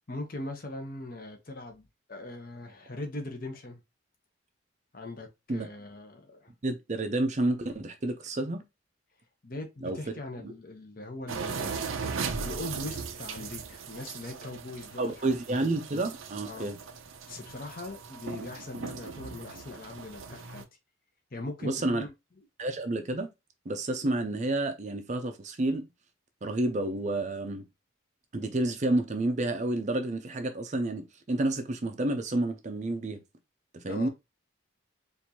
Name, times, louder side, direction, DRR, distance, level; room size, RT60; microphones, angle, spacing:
voice 1, 0.1-3.8 4.9-6.5 9.4-11.9 12.2-15.4 16.5-16.7 17.3-20.6 21.3-22.1 33.9-34.1, left 2 dB, 45° left, 0.9 m, -40 dB
voice 2, 6.6-8.6 9.8-10.0 10.4-10.5 15.0-16.8 21.6-22.0 22.6-23.3 23.7-25.9 26.4-27.7 28.3-33.2 33.8-34.1, right 2 dB, 35° right, 0.5 m, -30 dB
sound 1, 11.3-20.6, right 5 dB, 90° right, 0.6 m, -38 dB
4.3 x 2.6 x 2.9 m
head